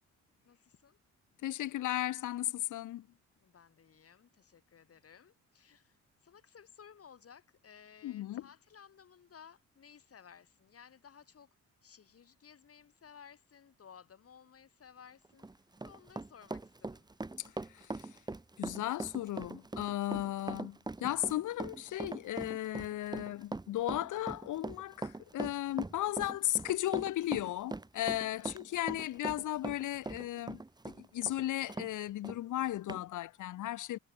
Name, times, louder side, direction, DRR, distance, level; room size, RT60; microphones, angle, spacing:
voice 1, 0.4-1.0 3.4-11.5 11.8-15.5 15.8-17.1 28.3-28.6, left 7 dB, 50° left, 6.2 m, -57 dB
voice 2, 1.4-3.1 8.0-8.4 17.7-17.9 18.6-30.6 31.0-34.0, left 14 dB, 80° left, 2.6 m, -35 dB
Run, 15.2-31.9 32.2-32.4 32.9-33.0, right 2 dB, 15° right, 1.3 m, -41 dB
cardioid pair, 90°, 30 cm